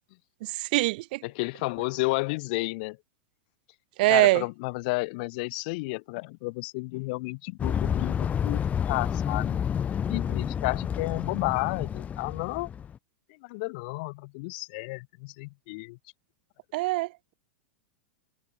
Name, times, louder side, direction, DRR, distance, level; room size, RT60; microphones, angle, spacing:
voice 1, 0.4-1.2 4.0-4.4 16.7-17.1, right 20 dB, 60° right, 1.0 m, -23 dB
voice 2, 1.2-3.0 4.1-9.6 10.1-12.7 13.4-16.0, left 26 dB, 55° left, 1.1 m, -32 dB
sound 1, 7.6-13.0, left 8 dB, 25° left, 1.7 m, -29 dB
hypercardioid pair, 100°, 6 cm